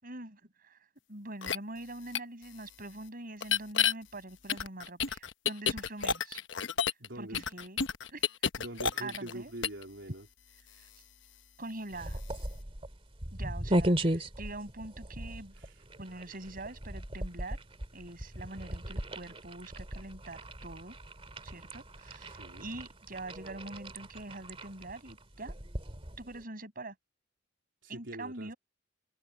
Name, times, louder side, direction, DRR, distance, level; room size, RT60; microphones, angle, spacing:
voice 1, 0.0-0.8 1.1-6.4 7.2-7.8 8.1-8.2 9.0-9.5 11.6-12.2 13.3-15.5 16.0-17.6 17.9-21.0 21.4-25.5 26.2-27.0 27.9-28.6, right 2 dB, 50° right, 6.9 m, -44 dB
sound 1, 1.4-1.6 2.1-2.2 3.4-3.9 4.5-7.1 7.3-9.3 9.6-9.8, left 7 dB, 75° left, 1.0 m, -30 dB
voice 2, 6.7-7.4 8.6-10.3 15.6-15.8 22.3-22.7 27.8-28.5, right 1 dB, 75° right, 3.8 m, -44 dB
sound 2, 11.9-26.4, right 1 dB, 30° right, 2.7 m, -37 dB
open air
head